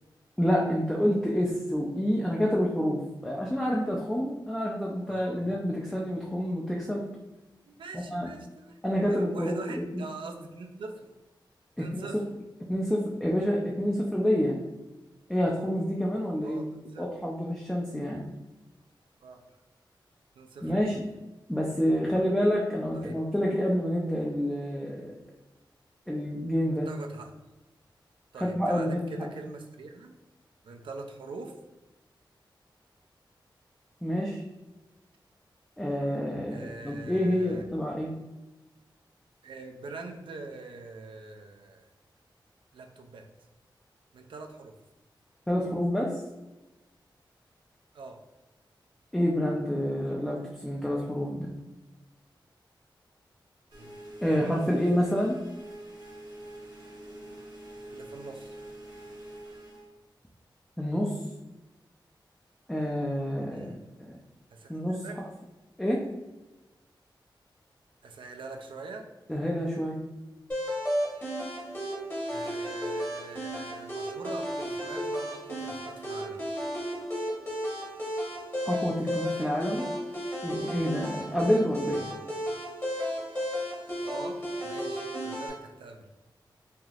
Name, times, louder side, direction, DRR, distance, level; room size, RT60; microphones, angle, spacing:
voice 1, 0.4-7.1 7.9-8.3 8.8-10.0 11.8-12.1 12.7-14.6 15.3-16.7 17.0-18.3 20.6-21.0 21.5-25.1 26.1-26.9 28.4-29.0 34.0-34.4 35.8-38.2 45.5-46.2 49.1-51.5 54.2-55.4 60.8-61.2 62.7-63.8 64.1-64.2 64.7-65.0 65.8-66.0 69.3-70.1 78.6-79.9 80.4-82.0, equal, 5° left, -2 dB, 0.3 m, -28 dB
voice 2, 5.1-5.5 7.6-11.1 11.8-12.2 16.4-17.1 19.2-19.4 20.3-20.9 22.9-23.2 26.9-27.3 28.3-30.1 30.6-31.6 36.5-37.6 39.4-41.9 42.7-43.3 44.1-44.8 47.9-48.2 53.7-53.9 54.2-54.4 57.8-58.5 63.5-63.8 64.5-65.2 68.0-69.1 72.3-76.5 81.9-82.2 84.0-86.1, right 3 dB, 80° right, 4 dB, 0.4 m, -43 dB
sound 1, 53.7-59.9, right 1 dB, 55° right, 1.0 m, -45 dB
sound 2, 70.5-85.5, equal, 25° left, 0.9 m, -33 dB
3.3 x 2.7 x 2.4 m, 1.1 s
wide cardioid pair, 130°, 8 cm